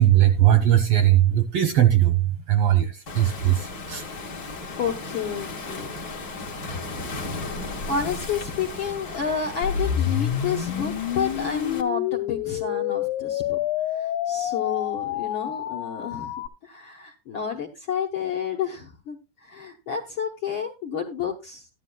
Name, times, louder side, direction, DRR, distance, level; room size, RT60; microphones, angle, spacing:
voice 1, 0.0-4.1 6.9-7.1, right 12 dB, 70° right, 1.4 m, -19 dB
Waves surf, 3.1-11.8, left 3 dB, 45° left, 1.3 m, -35 dB
voice 2, 4.8-6.0 7.9-13.6 13.9-16.3 16.6-21.7, left 6 dB, 60° left, 1.3 m, -30 dB
sound 1, 9.6-16.5, left 11 dB, 80° left, 2.0 m, -28 dB
14.0 x 11.5 x 2.2 m
omnidirectional pair, 3.5 m